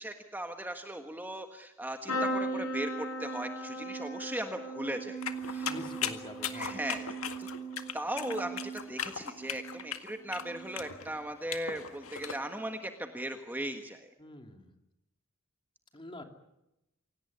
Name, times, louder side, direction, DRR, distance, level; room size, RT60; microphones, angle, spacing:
voice 1, 0.0-5.7 6.5-7.1 7.4-7.5 7.9-14.1, right 1 dB, 10° right, 5 dB, 1.5 m, -38 dB
sound 1, 2.1-9.9 10.3-10.9 12.1-12.3 12.6-12.7, right 2 dB, 85° left, 7.5 m, -38 dB
sound 2, 5.2-12.4, left 8 dB, 70° left, 1.9 m, -38 dB
voice 2, 5.6-6.8 14.2-14.7 15.9-16.2, left 1 dB, 25° left, 5 dB, 2.8 m, -46 dB
27.0 x 18.0 x 9.6 m, 0.92 s
head